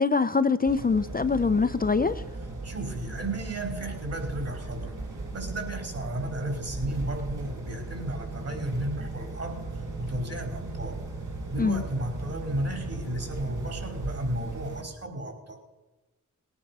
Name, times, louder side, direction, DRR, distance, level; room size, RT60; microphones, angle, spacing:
voice 1, 0.0-2.2 11.6-11.8, left 4 dB, 30° left, 10 dB, 0.5 m, -24 dB
sound 1, 0.6-14.8, right 2 dB, 70° right, 2.8 m, -37 dB
voice 2, 2.6-5.0 5.3-9.7 10.0-11.0 11.5-15.6, right 1 dB, 50° right, 4 dB, 4.1 m, -33 dB
19.5 x 9.7 x 5.5 m, 1.1 s
wide cardioid pair, 75°, 32 cm